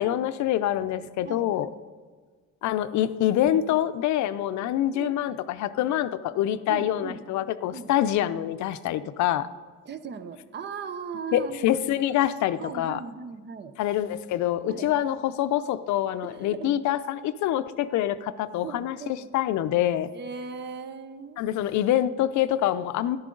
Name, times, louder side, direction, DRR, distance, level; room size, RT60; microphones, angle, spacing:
voice 1, 0.0-1.7 2.6-9.5 11.3-13.0 13.8-19.0 19.3-20.1 21.4-23.2, left 12 dB, 75° left, 13 dB, 0.6 m, -25 dB
voice 2, 1.2-1.8 4.9-5.4 6.7-7.2 7.7-7.9 9.8-11.8 12.6-13.7 14.6-14.9 16.3-16.7 18.6-19.3 20.1-21.4, right 6 dB, 35° right, 11 dB, 0.7 m, -38 dB
13.5 x 11.0 x 3.8 m, 1.5 s
cardioid pair, 145°, 29 cm